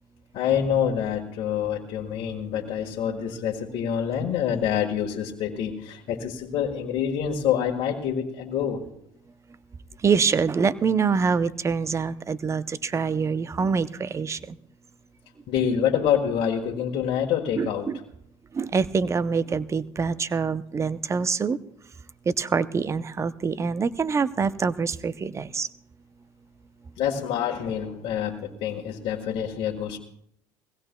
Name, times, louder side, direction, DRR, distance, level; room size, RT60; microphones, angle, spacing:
voice 1, 0.3-8.8 15.5-17.9 27.0-30.0, left 8 dB, 60° left, 0 dB, 1.6 m, -26 dB
voice 2, 10.0-14.6 17.6-18.0 18.5-21.6 22.3-25.7, right 5 dB, 25° right, 15 dB, 0.6 m, -25 dB
21.0 x 16.5 x 2.3 m, 0.73 s
supercardioid pair, 80°, 11 cm